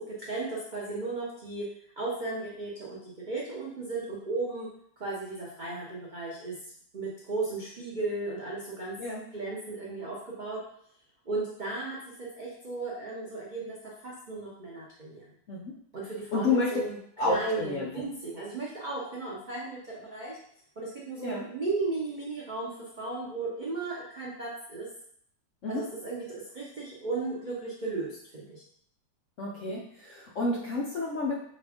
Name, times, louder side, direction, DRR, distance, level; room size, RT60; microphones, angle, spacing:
voice 1, 0.0-1.7 2.0-4.7 5.0-6.6 6.9-9.0 9.3-10.6 11.3-15.3 15.9-17.0 17.2-20.4 20.8-24.9 25.7-28.6, right 3 dB, 65° right, -5 dB, 0.4 m, -35 dB
voice 2, 16.3-16.8 17.2-17.9 21.2-21.4 25.6-25.8 29.4-31.3, left 3 dB, 65° left, -3 dB, 0.8 m, -30 dB
5.1 x 2.5 x 3.4 m, 0.65 s
omnidirectional pair, 2.0 m